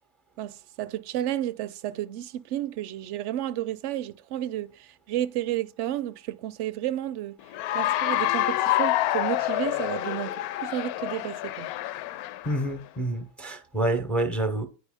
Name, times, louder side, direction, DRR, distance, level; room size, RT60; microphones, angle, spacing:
voice 1, 0.4-7.4 7.7-11.7, right 12 dB, 60° right, 0.5 m, -32 dB
Cheering / Applause, 7.5-12.7, left 14 dB, 65° left, 0.5 m, -27 dB
voice 2, 12.4-14.7, right 1 dB, 5° left, 0.5 m, -28 dB
9.1 x 4.9 x 3.4 m
cardioid pair, 155°, 48 cm